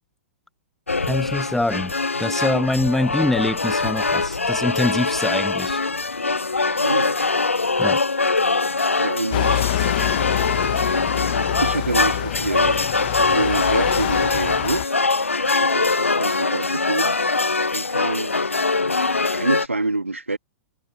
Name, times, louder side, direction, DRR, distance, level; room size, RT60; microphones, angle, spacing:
sound 1, 0.9-19.7, left 3 dB, 80° left, 0.5 m, -22 dB
voice 1, 1.0-1.9 2.2-5.9 7.8-8.0, left 2 dB, 5° left, 0.4 m, -24 dB
voice 2, 6.8-7.2 9.0-9.8 11.6-12.8 13.2-14.9 15.5-17.1 17.7-18.4 19.3-20.4, right 2 dB, 80° right, 1.9 m, -27 dB
sound 2, 9.3-14.8, left 16 dB, 45° left, 1.3 m, -26 dB
figure-of-eight pair, 105°, 7 cm